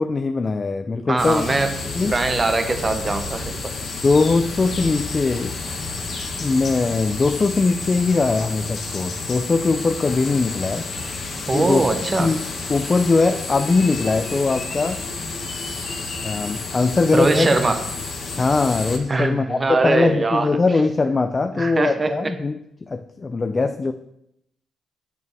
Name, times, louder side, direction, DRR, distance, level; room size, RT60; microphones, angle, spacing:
voice 1, 0.0-1.4 2.0-2.1 4.0-5.6 6.4-10.9 11.5-15.0 16.2-17.5 18.4-23.9, left 3 dB, 30° left, 8 dB, 0.4 m, -21 dB
voice 2, 1.1-3.6 11.5-12.3 17.1-17.8 19.1-20.5 21.5-22.3, right 3 dB, 25° right, 8 dB, 0.9 m, -21 dB
sound 1, 1.2-19.0, left 3 dB, 50° left, 1.4 m, -30 dB
8.2 x 6.7 x 3.4 m, 0.79 s
cardioid pair, 90°, 0 cm